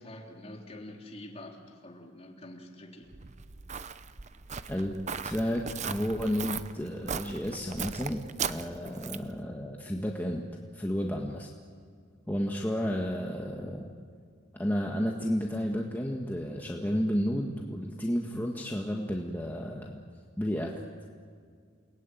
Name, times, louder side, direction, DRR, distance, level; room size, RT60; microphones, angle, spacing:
voice 1, 0.0-3.1, left 1 dB, 30° left, 1 dB, 3.4 m, -46 dB
Walk footsteps, 3.1-9.4, right 6 dB, 35° right, 0.7 m, -38 dB
voice 2, 5.2-10.4 10.7-11.5 12.3-13.9 14.5-20.0 20.4-20.7, equal, 10° left, 0 dB, 1.6 m, -32 dB
29.5 x 20.0 x 9.3 m, 2.1 s
head